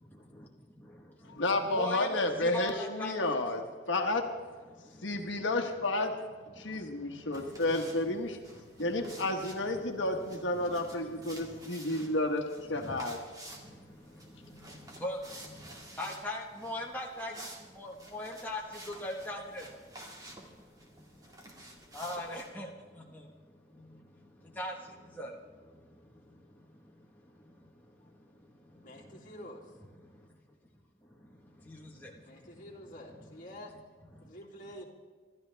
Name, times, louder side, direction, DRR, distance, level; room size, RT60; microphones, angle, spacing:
voice 1, 0.1-3.1 4.7-5.4 6.5-9.2 9.7-9.8 10.2-10.3 10.6-12.2 12.7-13.1 13.5-19.6 20.9-29.3 30.0-30.3 31.0-32.6 34.1-34.3, left 1 dB, 10° left, -2 dB, 1.3 m, -43 dB
voice 2, 1.2-4.3 5.0-6.1 6.5-8.4 8.8-13.2, left 2 dB, 75° left, 3 dB, 1.3 m, -31 dB
sound 1, 7.3-22.5, right 1 dB, 20° right, 2.0 m, -51 dB
voice 3, 28.8-29.7 32.2-33.7 34.2-34.8, equal, 40° left, -2 dB, 2.7 m, -48 dB
26.5 x 12.5 x 3.4 m, 1.5 s
head